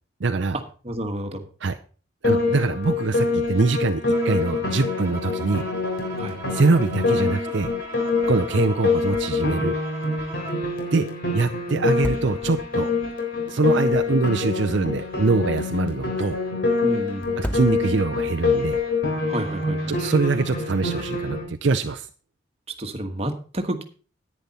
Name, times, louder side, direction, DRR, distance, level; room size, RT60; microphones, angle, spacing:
voice 1, 0.2-0.6 1.6-1.8 2.2-5.6 6.5-7.7 8.3-9.8 10.9-11.0 11.3-12.9 13.5-16.4 17.4-18.8 19.9-22.1, right 3 dB, 65° right, 6 dB, 0.6 m, -23 dB
voice 2, 0.8-1.4 6.2-6.4 16.8-17.6 19.3-20.0 22.8-23.8, right 1 dB, 30° right, 5 dB, 1.3 m, -30 dB
Piano, 2.2-21.4, left 3 dB, 55° left, 3.6 m, -25 dB
Bowed string instrument, 4.1-10.8, right 3 dB, 15° right, 2.0 m, -39 dB
sound 1, 9.0-9.5 9.8-9.9 11.8-12.8 14.5-15.4 17.3-18.2, equal, 10° left, 0.6 m, -35 dB
10.5 x 9.7 x 4.2 m, 0.39 s
head